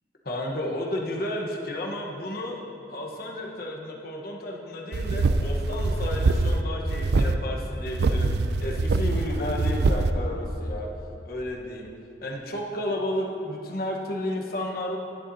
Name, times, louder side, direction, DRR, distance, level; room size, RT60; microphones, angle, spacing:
voice 1, 0.2-2.6 2.9-8.3 8.6-10.9 11.2-11.9 12.2-15.0, left 1 dB, 60° left, 0 dB, 1.1 m, -32 dB
sound 1, 4.9-6.6 6.9-7.3 7.9-10.1, right 3 dB, 65° right, 0.4 m, -24 dB
11.5 x 10.5 x 2.7 m, 2.6 s
head